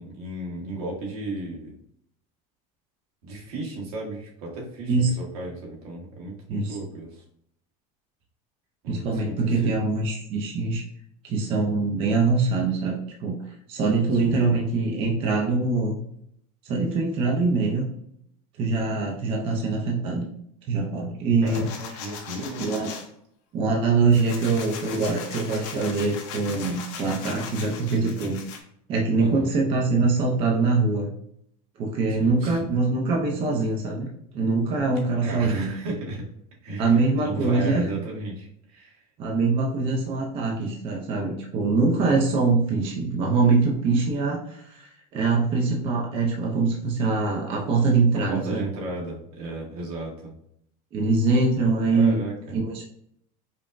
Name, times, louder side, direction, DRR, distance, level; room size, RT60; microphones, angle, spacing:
voice 1, 0.0-1.7 3.2-7.2 8.8-9.7 14.2-14.5 21.4-22.6 29.2-29.5 32.1-32.6 35.2-36.2 36.6-39.0 48.3-50.3 51.9-52.6, right 2 dB, 80° right, -3 dB, 1.4 m, -35 dB
voice 2, 8.9-10.8 11.2-13.4 13.7-16.0 16.6-17.8 18.6-20.3 20.7-22.0 22.6-23.0 23.5-28.4 28.9-31.1 31.8-35.7 36.8-37.9 39.2-48.7 50.9-52.2 52.5-52.9, right 3 dB, 30° right, -1 dB, 0.5 m, -23 dB
sound 1, 21.5-23.0 23.6-28.6, left 6 dB, 55° left, 0.7 m, -39 dB
5.1 x 2.1 x 2.5 m, 0.71 s
cardioid pair, 170°, 19 cm